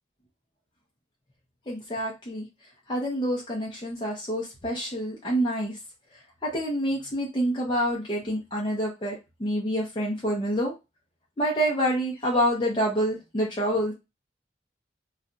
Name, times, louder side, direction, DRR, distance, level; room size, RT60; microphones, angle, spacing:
voice 1, 1.7-2.5 2.9-5.8 6.4-10.7 11.4-13.9, equal, 30° left, -3 dB, 0.6 m, -27 dB
2.4 x 2.2 x 3.8 m, 0.25 s
head